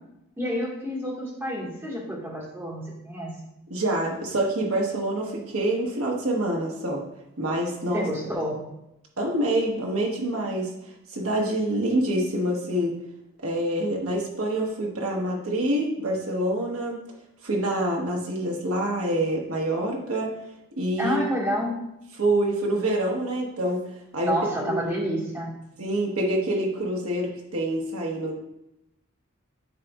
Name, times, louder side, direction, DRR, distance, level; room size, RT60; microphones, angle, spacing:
voice 1, 0.4-3.3 7.9-8.6 21.0-21.7 24.3-25.5, equal, 10° right, -5 dB, 1.7 m, -29 dB
voice 2, 3.7-7.0 7.4-8.0 9.2-10.7 11.1-13.0 13.4-17.0 17.4-20.3 20.8-21.2 22.2-23.8 24.1-24.3 24.6-24.7 25.8-28.4, right 1 dB, 85° right, -1 dB, 1.1 m, -26 dB
10.5 x 4.0 x 2.4 m, 0.87 s
head